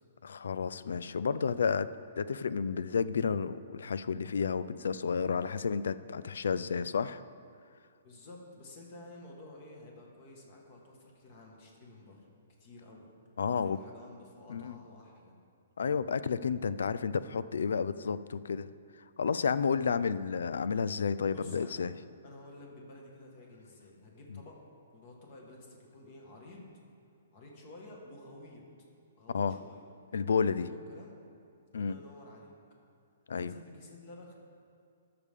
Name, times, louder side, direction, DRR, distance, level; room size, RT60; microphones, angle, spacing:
voice 1, 0.2-1.9 2.2-7.2 13.4-13.8 14.5-14.8 15.8-18.7 19.2-21.9 29.3-29.6 30.1-30.7 31.7-32.0 33.3-33.5, left 6 dB, 75° left, 15 dB, 0.4 m, -31 dB
voice 2, 8.0-12.2 12.6-13.1 13.5-15.3 21.3-21.8 22.2-24.6 24.9-26.7 27.3-28.6 29.2-30.2 30.6-31.1 31.7-32.5 33.4-34.3, left 2 dB, 25° left, -1 dB, 1.6 m, -51 dB
20.0 x 6.8 x 3.7 m, 2.5 s
hypercardioid pair, 180°, 0 cm